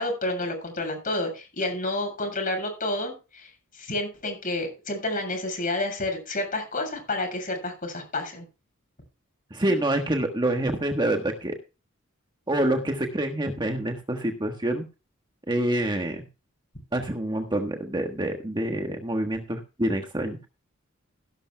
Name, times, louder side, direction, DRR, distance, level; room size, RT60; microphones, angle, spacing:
voice 1, 0.0-3.5 3.8-8.5, left 2 dB, 40° left, 4 dB, 6.9 m, -30 dB
voice 2, 9.5-11.6 12.5-14.8 15.5-16.2 16.9-20.4, right 1 dB, 20° right, 4 dB, 1.4 m, -26 dB
16.5 x 12.0 x 2.3 m, 0.30 s
head